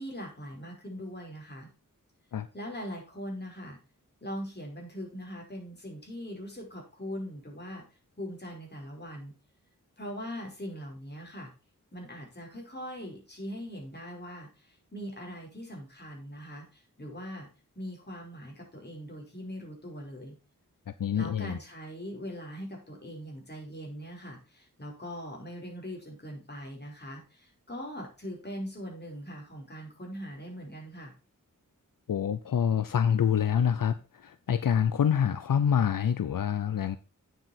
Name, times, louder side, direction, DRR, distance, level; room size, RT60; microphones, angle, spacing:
voice 1, 0.0-1.7 2.5-3.8 4.2-7.8 8.2-9.3 10.0-11.5 11.9-17.5 17.8-20.4 21.1-31.1, equal, 30° left, 5.3 m, -41 dB
voice 2, 21.0-21.6 32.1-37.0, left 8 dB, 80° left, 0.6 m, -26 dB
8.9 x 8.0 x 4.4 m
wide cardioid pair, 65°, 32 cm